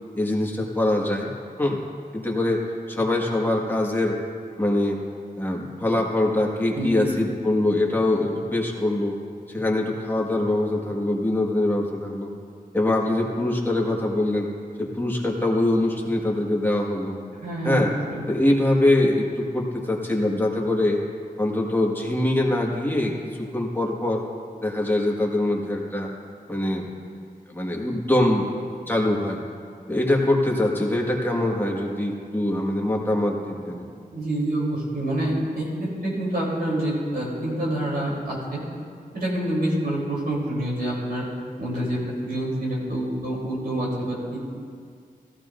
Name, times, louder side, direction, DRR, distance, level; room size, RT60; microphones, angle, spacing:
voice 1, 0.1-1.3 1.6-1.8 2.1-2.6 2.9-4.2 4.6-5.0 5.4-9.2 9.5-12.3 12.7-14.5 14.8-17.2 17.6-17.9 18.3-21.0 21.4-24.2 24.6-26.1 26.5-26.9 27.5-28.5 28.9-29.4 29.9-33.8, left 1 dB, 15° left, -2 dB, 1.8 m, -23 dB
voice 2, 6.7-7.0 17.4-17.8 18.1-18.2 34.1-38.6 39.1-41.2 41.6-42.0 42.2-44.4, right 1 dB, 85° right, -5 dB, 3.7 m, -27 dB
16.5 x 15.0 x 2.7 m, 2.2 s
wide cardioid pair, 100°, 15 cm